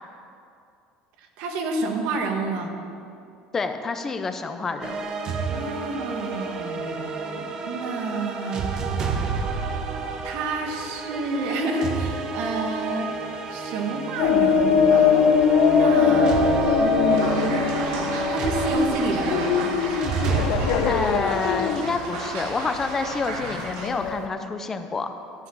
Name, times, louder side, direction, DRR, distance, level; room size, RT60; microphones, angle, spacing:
voice 1, 1.2-2.8 5.5-9.2 10.2-13.1 13.5-15.2 15.7-16.5 16.8-17.6 18.3-19.8, right 2 dB, 65° right, 3 dB, 1.5 m, -29 dB
voice 2, 3.5-5.1 20.9-25.1, left 4 dB, 20° left, 8 dB, 0.6 m, -28 dB
sound 1, 4.8-22.5, right 4 dB, 35° right, 0.9 m, -30 dB
sound 2, 14.2-24.3, left 6 dB, 65° left, 0.8 m, -22 dB
sound 3, 17.1-23.9, right 2 dB, 90° right, 2.0 m, -35 dB
13.0 x 4.9 x 7.7 m, 2.5 s
cardioid pair, 155°, 2 cm